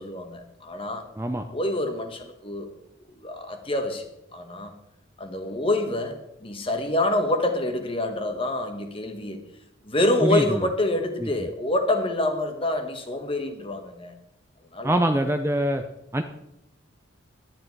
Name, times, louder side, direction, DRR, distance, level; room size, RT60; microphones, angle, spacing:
voice 1, 0.0-1.1 1.5-2.7 3.1-4.7 5.2-9.4 9.8-14.1 14.7-15.0, left 1 dB, 25° left, 6 dB, 1.2 m, -27 dB
voice 2, 10.2-10.7 11.2-11.3 14.8-15.8 16.1-16.2, right 1 dB, 15° right, 6 dB, 0.5 m, -24 dB
11.5 x 9.8 x 4.6 m, 0.84 s
head